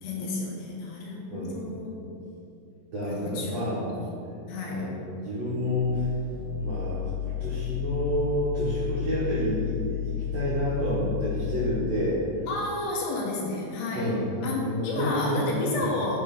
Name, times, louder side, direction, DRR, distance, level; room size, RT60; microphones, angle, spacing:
voice 1, 0.0-2.2 3.1-4.1 4.5-4.9 12.5-14.1 14.4-16.2, left 2 dB, 75° left, -3 dB, 2.8 m, -32 dB
voice 2, 1.3-1.7 2.9-3.8 4.7-6.1 6.5-9.8 10.1-12.2 13.9-15.4 15.7-15.9, equal, 75° right, -10 dB, 1.5 m, -29 dB
sound 1, 5.8-11.9, left 11 dB, 55° right, 2.8 m, -32 dB
7.5 x 3.7 x 5.3 m, 2.6 s
omnidirectional pair, 5.0 m